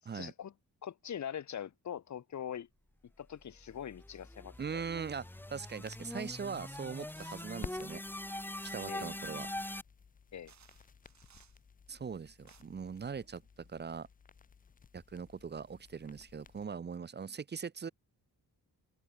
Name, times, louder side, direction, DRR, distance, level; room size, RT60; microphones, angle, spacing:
voice 1, 0.1-0.5 0.8-2.7 3.2-4.8 8.9-9.1 10.3-10.5, left 9 dB, 50° left, 1.0 m, -42 dB
sound 1, 3.4-9.8, left 1 dB, 5° left, 0.8 m, -43 dB
sound 2, 4.5-16.7, left 6 dB, 25° left, 0.4 m, -55 dB
voice 2, 4.6-8.0 8.7-9.5 11.9-14.1 14.9-17.9, right 6 dB, 30° right, 0.7 m, -41 dB
sound 3, 7.2-7.6 8.6-9.0 10.0-10.1 10.5-11.6 12.2-12.6, right 8 dB, 50° right, 1.4 m, -63 dB
wide cardioid pair, 135°, 36 cm